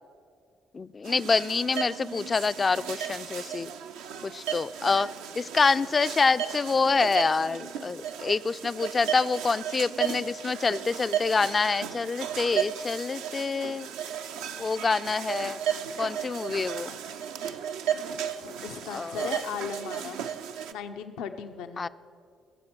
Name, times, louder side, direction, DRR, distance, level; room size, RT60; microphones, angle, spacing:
voice 1, 0.7-3.7 4.2-5.1 5.4-13.9 14.6-15.6 16.0-17.0 18.9-19.3 21.8-21.9, left 4 dB, 35° left, 15 dB, 0.4 m, -26 dB
sound 1, 1.0-20.7, right 9 dB, 85° right, 0.5 m, -35 dB
voice 2, 18.4-20.2 20.7-21.9, left 7 dB, 80° left, 7 dB, 0.7 m, -37 dB
21.5 x 7.2 x 6.1 m, 2.3 s
hypercardioid pair, 55°, 0 cm